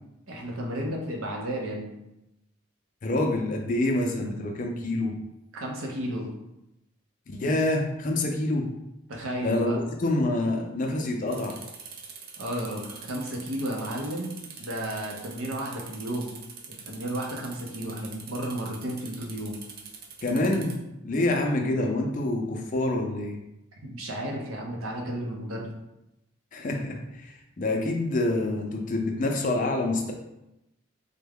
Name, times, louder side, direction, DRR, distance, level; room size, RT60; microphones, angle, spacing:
voice 1, 0.3-1.9 5.5-6.3 9.1-9.8 12.4-16.4 16.7-19.6 23.8-25.7, right 1 dB, 85° right, 0 dB, 0.7 m, -33 dB
voice 2, 3.0-5.2 7.3-8.7 9.4-11.6 20.2-20.8 21.0-23.4 26.5-30.1, left 2 dB, 40° left, 2 dB, 0.4 m, -27 dB
sound 1, 11.3-20.8, right 5 dB, 45° right, 0.4 m, -44 dB
3.4 x 2.2 x 3.5 m, 0.90 s
head